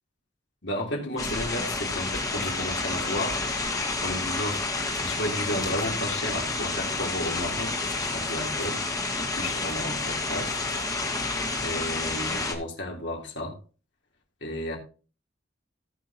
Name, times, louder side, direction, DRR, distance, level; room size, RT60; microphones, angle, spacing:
voice 1, 0.6-3.4 3.7-4.6 5.0-10.6 11.5-13.6 14.4-14.8, left 1 dB, 65° left, 3.6 m, -33 dB
sound 1, 1.2-12.5, left 3 dB, 20° left, 1.8 m, -30 dB
18.0 x 6.3 x 3.0 m
head